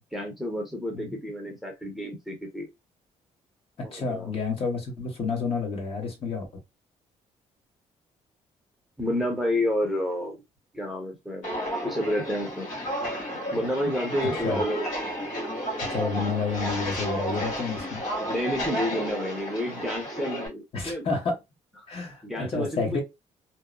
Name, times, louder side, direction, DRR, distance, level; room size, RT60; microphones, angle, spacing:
voice 1, 0.0-2.7 3.8-4.3 9.0-10.4 10.7-11.4 11.8-12.7 13.3-14.8 18.2-21.1 22.2-23.0, left 1 dB, ahead, 0.7 m, -30 dB
voice 2, 3.8-6.5 14.4-14.6 15.9-18.1 20.7-21.4 21.9-23.0, left 4 dB, 45° left, 1.1 m, -30 dB
Walk footsteps, 11.4-20.5, equal, 70° left, 1.5 m, -32 dB
2.8 x 2.0 x 2.3 m
cardioid pair, 105°, 13 cm